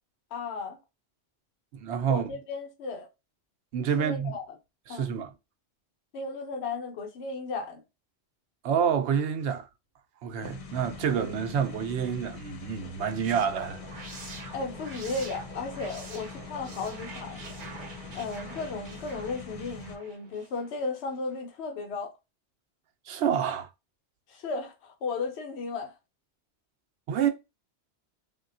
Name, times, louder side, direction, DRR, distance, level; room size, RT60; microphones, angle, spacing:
voice 1, 0.3-0.8 2.1-3.1 4.0-4.4 4.9-5.1 6.1-7.8 14.5-17.4 18.1-22.1 24.3-25.9, left 3 dB, 75° left, 1.0 m, -35 dB
voice 2, 1.7-2.3 3.7-4.3 4.9-5.3 8.6-9.7 10.2-13.8 23.1-23.7 27.1-27.3, right 7 dB, 80° right, 0.9 m, -28 dB
sound 1, 10.4-20.0, left 6 dB, 55° left, 0.4 m, -43 dB
sound 2, 12.8-20.9, right 4 dB, 50° right, 0.9 m, -46 dB
3.5 x 2.2 x 2.5 m
omnidirectional pair, 1.1 m